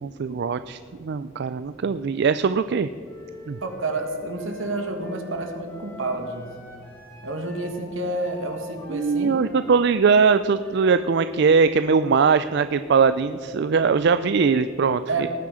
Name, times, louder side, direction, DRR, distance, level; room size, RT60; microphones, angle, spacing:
voice 1, 0.0-2.9 3.5-3.6 8.9-15.3, right 5 dB, 55° right, 12 dB, 0.4 m, -21 dB
Wind instrument woodwind instrument, 3.0-12.8, left 2 dB, 10° left, 3.4 m, -47 dB
voice 2, 3.6-6.5 7.2-9.5 15.1-15.3, right 2 dB, 80° right, 4 dB, 1.9 m, -29 dB
18.5 x 9.5 x 4.9 m, 2.4 s
head